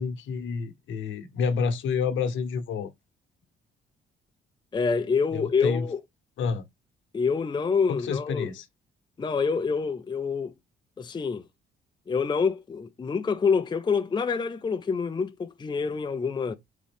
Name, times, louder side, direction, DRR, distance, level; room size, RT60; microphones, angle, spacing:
voice 1, 0.0-2.9 5.3-5.9 6.4-6.6 7.9-8.7, left 5 dB, 75° left, 1.0 m, -29 dB
voice 2, 4.7-6.0 7.1-8.5 9.2-10.5 11.0-11.4 12.1-16.5, left 5 dB, 20° left, 0.5 m, -26 dB
3.8 x 3.7 x 3.5 m
cardioid pair, 90°, 20 cm